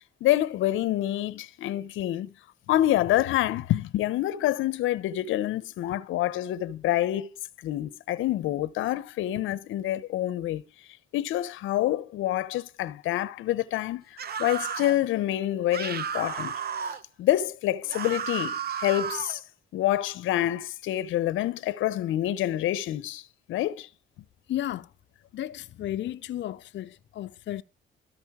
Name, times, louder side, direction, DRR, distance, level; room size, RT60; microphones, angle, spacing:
voice 1, 0.2-2.3 2.7-7.3 7.6-10.6 11.1-16.5 17.2-19.4 19.7-23.2 23.5-23.9, left 13 dB, 90° left, 1.0 m, -27 dB
sound 1, 14.2-15.0 15.7-17.0 17.9-19.4, right 7 dB, 50° right, 1.3 m, -33 dB
voice 2, 24.5-24.9 25.3-27.6, left 12 dB, 65° left, 0.7 m, -33 dB
13.5 x 5.6 x 7.3 m
cardioid pair, 90°, 20 cm